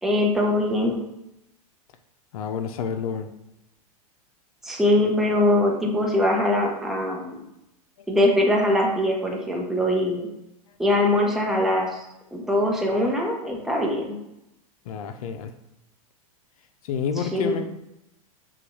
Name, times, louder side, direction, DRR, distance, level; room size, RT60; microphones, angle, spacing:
voice 1, 0.0-1.0 4.6-7.4 8.1-10.3 10.8-12.0 12.3-14.2 17.2-17.6, left 1 dB, ahead, -1 dB, 0.8 m, -22 dB
voice 2, 2.3-3.3 14.9-15.5 16.9-17.7, left 7 dB, 70° left, 8 dB, 0.6 m, -29 dB
5.7 x 2.4 x 3.2 m, 0.86 s
hypercardioid pair, 130°, 19 cm